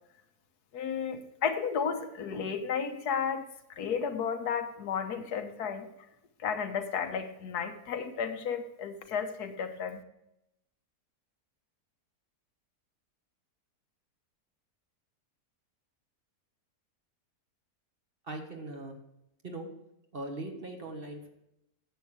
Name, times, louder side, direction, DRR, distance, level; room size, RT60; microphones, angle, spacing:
voice 1, 0.7-5.9 6.4-10.0, left 6 dB, 85° left, 7 dB, 1.5 m, -33 dB
voice 2, 18.2-19.0 19.4-19.7 20.1-21.3, right 2 dB, 40° right, 3 dB, 1.4 m, -40 dB
10.0 x 7.7 x 4.7 m, 0.84 s
omnidirectional pair, 1.6 m